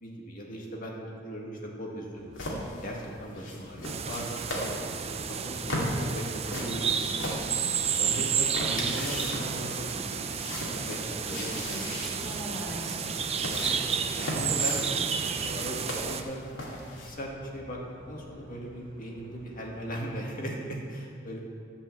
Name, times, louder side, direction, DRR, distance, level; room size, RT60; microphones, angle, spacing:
voice 1, 0.0-2.3 2.8-7.0 7.8-10.2 10.7-11.7 13.4-16.5 17.0-17.8 18.1-21.4, equal, 45° left, -2 dB, 2.0 m, -38 dB
sound 1, 2.1-20.0, equal, 65° right, 1.5 m, -51 dB
sound 2, 2.3-17.1, left 1 dB, 85° left, 2.4 m, -38 dB
sound 3, 3.8-16.2, right 7 dB, 35° right, 0.5 m, -31 dB
voice 2, 11.3-13.0, equal, ahead, -6 dB, 2.8 m, -40 dB
12.5 x 5.5 x 7.6 m, 2.2 s
head